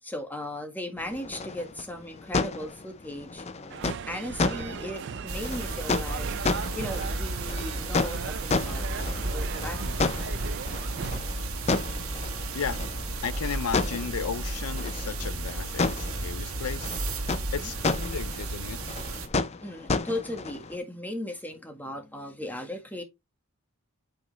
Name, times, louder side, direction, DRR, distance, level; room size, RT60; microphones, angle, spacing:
voice 1, 0.0-6.3 6.7-10.0 17.4-17.7 19.6-23.0, left 1 dB, 10° left, 1.6 m, -37 dB
sound 1, 1.0-20.8, left 3 dB, 30° left, 0.5 m, -33 dB
sound 2, 3.7-11.2, right 7 dB, 50° right, 0.4 m, -38 dB
sound 3, 5.3-19.3, right 2 dB, 75° right, 1.5 m, -33 dB
voice 2, 12.5-12.8 13.2-16.9 17.5-19.0, left 6 dB, 85° left, 0.5 m, -34 dB
8.4 x 5.3 x 3.2 m
head